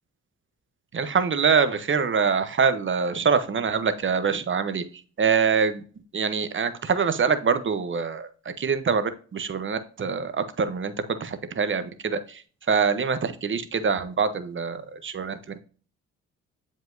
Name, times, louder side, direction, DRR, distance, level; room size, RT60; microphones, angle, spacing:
voice 1, 0.9-4.8 5.2-5.8 6.1-15.4, right 5 dB, 35° right, 11 dB, 0.9 m, -25 dB
7.4 x 5.1 x 2.7 m, 0.40 s
hypercardioid pair, 50°, 34 cm